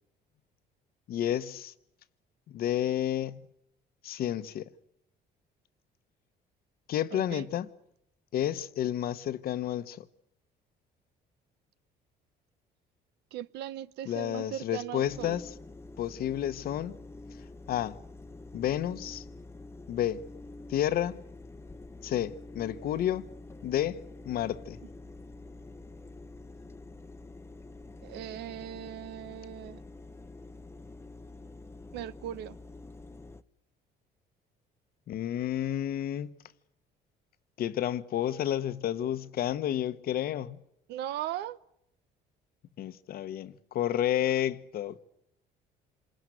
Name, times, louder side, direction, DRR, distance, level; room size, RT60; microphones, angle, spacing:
voice 1, 1.1-1.7 2.5-3.4 4.0-4.6 6.9-7.7 8.3-10.0 14.0-15.5 16.0-17.0 17.7-18.0 18.5-19.2 19.9-20.2 20.7-21.2 22.0-23.3 23.6-24.8 35.1-36.3 37.6-40.6 42.8-45.0, left 11 dB, 60° left, 1.1 m, -31 dB
voice 2, 7.1-7.5 13.3-15.4 28.0-29.8 31.9-32.5 40.9-41.6, right 12 dB, 80° right, 0.9 m, -38 dB
sound 1, 15.0-33.4, left 2 dB, 15° left, 0.9 m, -47 dB
27.0 x 20.5 x 9.2 m
cardioid pair, 110°, 17 cm